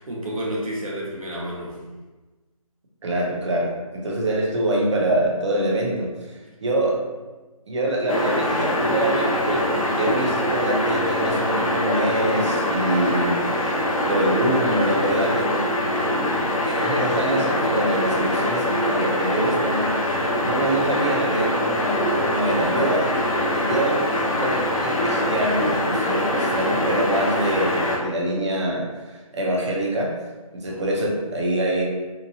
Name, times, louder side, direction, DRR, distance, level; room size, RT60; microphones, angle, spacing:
voice 1, 0.0-1.8 30.7-31.1, right 1 dB, 70° right, -4 dB, 1.0 m, -31 dB
voice 2, 3.0-7.0 7.7-15.7 16.6-23.1 23.5-24.1 24.4-28.9 29.3-30.1 30.5-31.8, right 1 dB, 50° right, -2 dB, 0.7 m, -25 dB
sound 1, 8.1-28.0, left 1 dB, 65° left, 0.7 m, -23 dB
2.9 x 2.2 x 2.6 m, 1.2 s
figure-of-eight pair, 155°, 19 cm